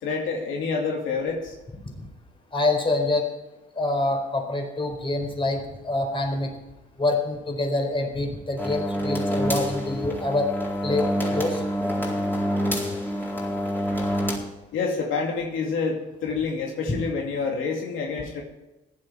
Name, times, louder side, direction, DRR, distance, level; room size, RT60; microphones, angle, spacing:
voice 1, 0.0-1.5 14.7-18.4, left 4 dB, 85° left, 0 dB, 2.5 m, -27 dB
voice 2, 2.5-3.3 3.7-6.5 7.0-10.5 10.8-11.6 16.9-17.0, left 2 dB, 25° left, 3 dB, 4.2 m, -26 dB
sound 1, 8.6-14.4, equal, 10° left, 4.2 m, -27 dB
15.5 x 11.0 x 4.8 m, 1.0 s
cardioid pair, 90°, 20 cm